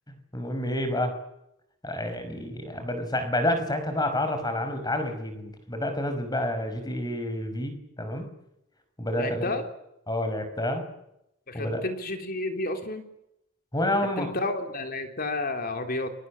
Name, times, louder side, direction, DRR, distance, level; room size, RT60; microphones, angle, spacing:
voice 1, 0.3-1.1 1.8-8.3 9.0-9.6 10.1-10.8 11.5-11.8 13.7-14.3, left 1 dB, 20° left, 7 dB, 5.3 m, -29 dB
voice 2, 9.2-9.6 11.5-13.0 14.2-16.1, left 2 dB, 45° left, 6 dB, 3.5 m, -31 dB
29.5 x 23.0 x 7.3 m, 0.82 s
head